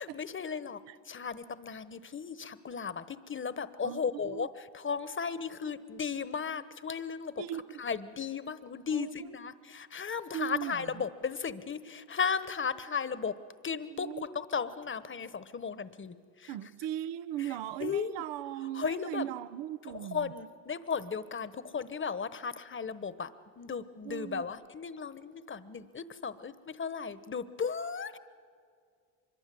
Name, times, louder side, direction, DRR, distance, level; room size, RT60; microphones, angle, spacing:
voice 1, 0.0-0.8 1.1-7.3 7.8-13.3 13.6-16.6 17.4-17.5 17.8-18.2 18.7-19.3 19.9-28.2, left 6 dB, 30° left, 1.2 m, -36 dB
voice 2, 3.8-4.5 7.4-7.6 8.9-9.4 10.3-11.0 13.9-14.2 16.5-20.3 24.0-24.5, right 12 dB, 75° right, 0.8 m, -38 dB
24.5 x 22.5 x 7.8 m
supercardioid pair, 70°, 43 cm